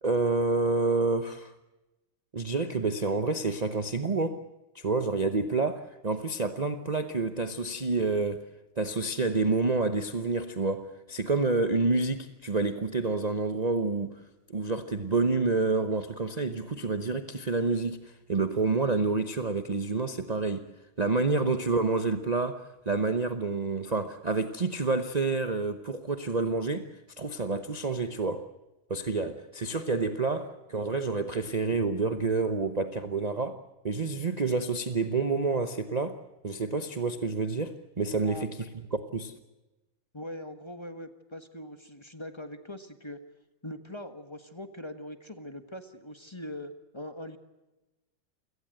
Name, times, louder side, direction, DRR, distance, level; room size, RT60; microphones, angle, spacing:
voice 1, 0.0-1.5 2.3-4.4 4.7-8.5 8.8-14.2 14.5-20.7 21.0-26.9 27.2-28.5 28.9-36.2 36.4-38.5 38.9-39.3, right 3 dB, 40° right, 0.5 m, -28 dB
voice 2, 40.1-43.2 43.6-47.4, left 1 dB, 15° left, 1.3 m, -42 dB
28.5 x 18.0 x 7.8 m
omnidirectional pair, 2.3 m